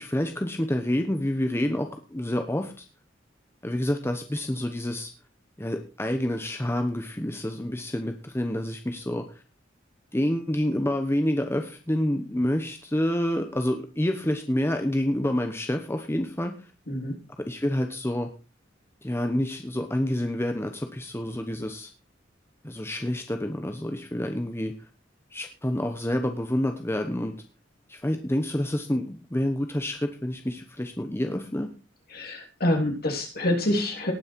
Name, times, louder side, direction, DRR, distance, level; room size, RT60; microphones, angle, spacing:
voice 1, 0.0-2.8 3.6-5.1 5.6-9.2 10.1-16.7 17.5-18.3 19.0-21.9 22.6-24.7 25.3-27.3 27.9-31.7, left 1 dB, 15° left, 5 dB, 1.0 m, -28 dB
voice 2, 32.1-34.1, left 1 dB, 55° left, 2 dB, 3.3 m, -26 dB
18.5 x 6.4 x 4.5 m, 0.32 s
head